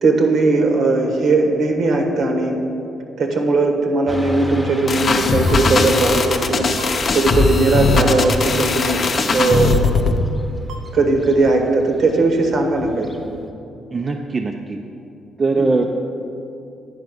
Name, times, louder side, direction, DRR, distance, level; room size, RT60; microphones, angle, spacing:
voice 1, 0.0-2.6 3.2-6.7 7.1-9.0 9.3-9.7 10.9-13.1 15.6-15.7, right 3 dB, 60° right, 3 dB, 1.2 m, -18 dB
Motorcycle / Traffic noise roadway noise, 4.1-13.5, right 1 dB, ahead, 0.8 m, -34 dB
sound 1, 4.9-10.2, left 3 dB, 45° left, 0.7 m, -19 dB
sound 2, 5.5-5.6 6.8-6.9 8.1-8.2 9.4-9.5 10.7-10.8, equal, 80° right, 0.8 m, -34 dB
voice 2, 13.9-14.8 15.4-15.8, right 3 dB, 35° right, 3 dB, 0.4 m, -20 dB
9.4 x 4.7 x 6.1 m, 2.7 s
cardioid pair, 90°, 0 cm